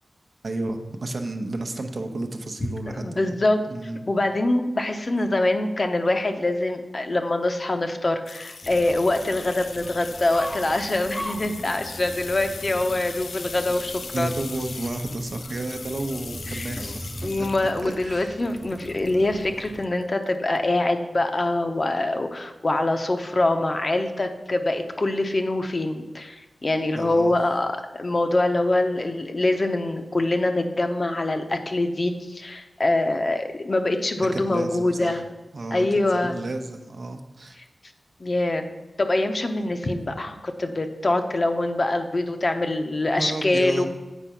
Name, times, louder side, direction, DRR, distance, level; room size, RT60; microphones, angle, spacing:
voice 1, 0.4-3.3 3.7-4.0 14.1-17.1 17.4-18.3 26.9-27.3 34.2-35.2 35.5-37.6 43.2-43.9, right 2 dB, 55° right, 5 dB, 0.8 m, -32 dB
voice 2, 2.9-3.6 4.1-14.3 16.5-16.7 17.2-35.2 35.7-36.3 38.2-38.7 39.0-43.9, left 2 dB, 40° left, 6 dB, 0.7 m, -24 dB
sound 1, 8.3-19.2 19.7-20.2 20.6-20.7, left 4 dB, 75° left, 0.5 m, -40 dB
sound 2, 8.6-19.9, equal, 5° left, 0.5 m, -40 dB
8.1 x 5.0 x 5.7 m, 1.2 s
wide cardioid pair, 105°, 0 cm